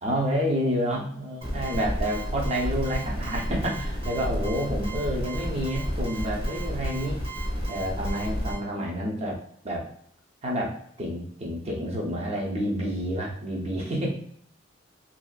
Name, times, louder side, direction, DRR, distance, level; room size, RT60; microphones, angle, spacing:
voice 1, 0.0-7.2 7.7-9.9 10.4-14.1, equal, 35° right, -2 dB, 0.6 m, -29 dB
sound 1, 1.4-8.6, equal, 50° right, 1.2 m, -31 dB
2.7 x 2.4 x 2.3 m, 0.65 s
head